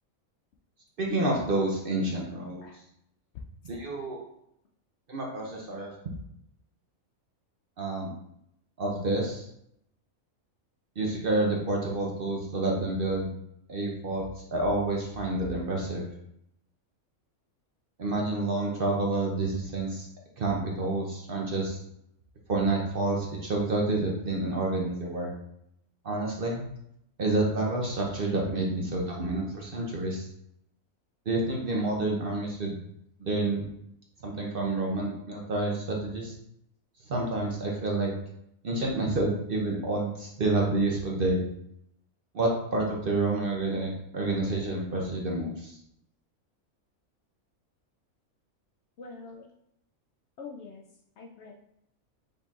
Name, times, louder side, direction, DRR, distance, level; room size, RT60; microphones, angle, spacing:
voice 1, 1.0-2.6 3.6-4.2 5.1-5.9 7.8-8.1 8.8-9.5 11.0-13.3 13.7-16.0 18.0-20.1 20.4-21.8 22.5-25.3 26.0-26.7 27.2-30.3 31.3-32.7 33.2-33.6 34.2-36.3 37.1-38.1 38.6-41.4 42.3-45.8, right 2 dB, 50° right, -1 dB, 0.8 m, -29 dB
voice 2, 49.0-49.5 50.4-50.8 51.2-51.5, left 4 dB, 65° left, 1 dB, 0.7 m, -44 dB
5.2 x 4.1 x 2.4 m, 0.76 s
omnidirectional pair, 1.5 m